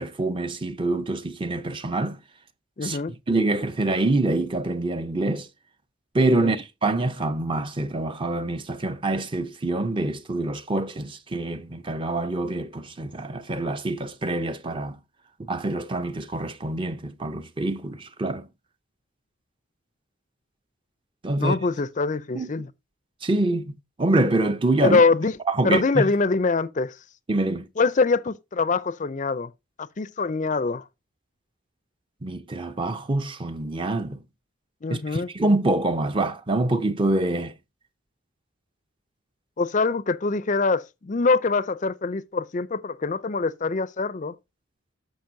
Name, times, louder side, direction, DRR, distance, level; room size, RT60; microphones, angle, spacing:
voice 1, 0.0-2.2 2.8-3.0 3.3-5.5 6.1-15.0 15.4-18.5 21.2-21.6 22.3-22.5 23.2-23.7 24.0-25.0 25.5-26.1 27.3-27.7 32.2-34.2 34.9-37.5, right 2 dB, 25° right, 0.6 m, -25 dB
voice 2, 2.8-3.1 6.4-6.5 21.4-22.7 24.8-25.3 25.6-26.9 27.8-29.5 29.8-30.8 34.8-35.3 39.6-44.3, left 4 dB, 35° left, 0.5 m, -24 dB
10.5 x 7.0 x 2.7 m
head